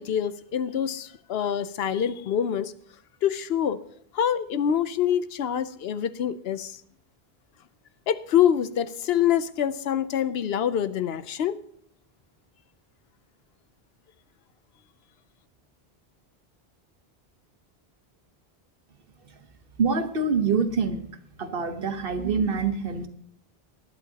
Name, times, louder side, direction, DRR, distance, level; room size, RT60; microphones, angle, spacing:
voice 1, 0.0-2.7 3.2-3.8 4.1-6.8 8.1-11.6, left 9 dB, 75° left, 13 dB, 0.9 m, -25 dB
voice 2, 19.8-21.1 21.4-23.1, right 5 dB, 65° right, 8 dB, 1.3 m, -25 dB
19.5 x 11.0 x 2.8 m, 0.63 s
omnidirectional pair, 1.0 m